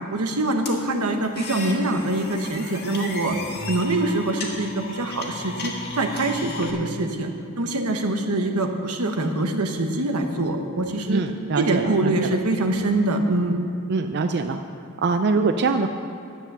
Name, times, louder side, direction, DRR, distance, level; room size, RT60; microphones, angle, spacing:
voice 1, 0.1-3.4 3.7-7.3 7.6-11.2 11.6-13.6, right 2 dB, 90° right, 4 dB, 1.1 m, -24 dB
sound 1, 0.7-6.7, left 3 dB, 50° left, 1.6 m, -35 dB
voice 2, 11.1-12.4 13.9-14.6 15.0-15.9, right 4 dB, 50° right, 7 dB, 0.4 m, -23 dB
11.0 x 8.1 x 6.8 m, 2.7 s
head